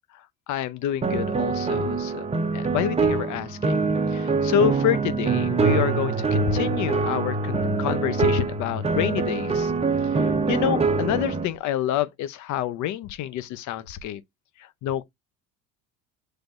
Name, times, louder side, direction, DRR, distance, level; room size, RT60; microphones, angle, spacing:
voice 1, 0.5-2.3 2.5-3.8 4.1-9.7 10.1-14.2 14.6-15.0, left 11 dB, 60° left, 0.7 m, -28 dB
sound 1, 1.0-11.5, right 4 dB, 20° right, 0.7 m, -24 dB
6.1 x 3.3 x 2.5 m
supercardioid pair, 90°, 32 cm